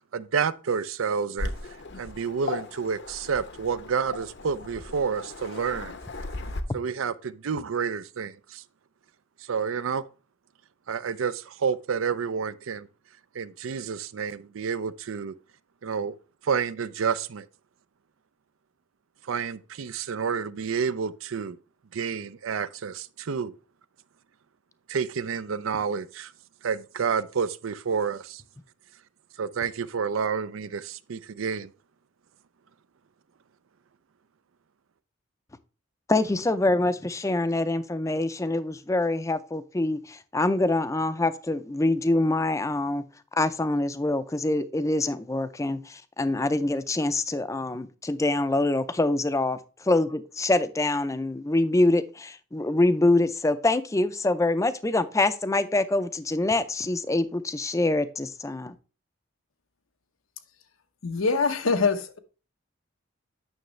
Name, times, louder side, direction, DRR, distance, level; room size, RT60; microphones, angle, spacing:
voice 1, 0.1-1.5 2.0-5.9 6.7-8.6 9.4-10.0 10.9-12.9 13.3-15.4 15.8-16.1 16.4-17.5 19.2-21.6 21.9-23.5 24.9-26.3 26.6-28.4 29.4-31.7, right 6 dB, 80° right, 0.5 m, -29 dB
Waves surf, 1.4-6.6, left 2 dB, 60° left, 0.8 m, -37 dB
voice 2, 36.1-43.0 43.3-49.6 49.9-58.7, left 2 dB, 15° left, 0.4 m, -25 dB
voice 3, 61.0-62.2, left 4 dB, 85° left, 0.9 m, -24 dB
9.2 x 6.3 x 3.2 m
head